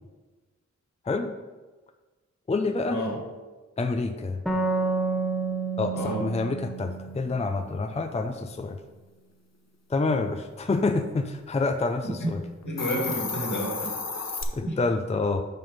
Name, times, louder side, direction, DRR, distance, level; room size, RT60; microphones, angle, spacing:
voice 1, 2.5-3.0 3.8-4.4 5.8-8.8 9.9-12.4 14.5-15.4, left 3 dB, 20° left, 6 dB, 0.5 m, -27 dB
sound 1, 4.5-8.0, right 3 dB, ahead, 0.9 m, -30 dB
voice 2, 5.9-6.2 12.0-12.3 12.6-13.9 14.6-14.7, equal, 75° left, -3 dB, 2.1 m, -30 dB
Hiss, 12.6-14.4, left 4 dB, 60° left, 0.8 m, -32 dB
5.7 x 5.4 x 5.3 m, 1.2 s
wide cardioid pair, 70°, 30 cm